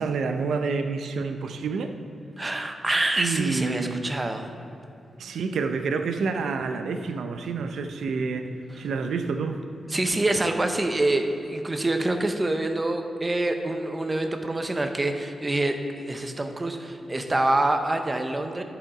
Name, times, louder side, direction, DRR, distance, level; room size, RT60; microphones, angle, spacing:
voice 1, 0.0-1.9 3.2-4.0 5.2-9.6, right 4 dB, 85° right, 7 dB, 0.5 m, -28 dB
voice 2, 2.4-4.5 9.9-18.6, right 2 dB, 20° right, 6 dB, 0.6 m, -26 dB
10.5 x 5.0 x 4.9 m, 2.6 s
wide cardioid pair, 105°, 0 cm